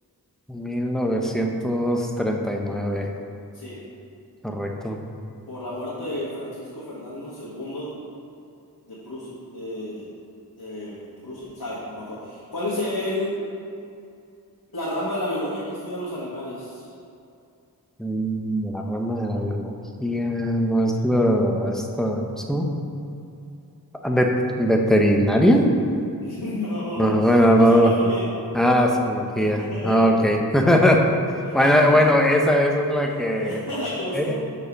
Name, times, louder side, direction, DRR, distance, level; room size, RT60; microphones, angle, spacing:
voice 1, 0.5-3.1 4.4-5.0 18.0-19.7 20.0-22.2 22.5-22.7 24.0-25.7 27.0-27.9 28.5-31.0 31.5-33.6 34.1-34.4, equal, ahead, 1 dB, 0.8 m, -20 dB
voice 2, 5.5-7.9 8.9-10.1 10.6-13.3 14.7-16.9 26.2-28.2 29.4-30.1 31.4-32.0 33.3-34.4, left 1 dB, 75° left, -9 dB, 1.7 m, -31 dB
6.5 x 5.3 x 5.2 m, 2.6 s
wide cardioid pair, 55°, 37 cm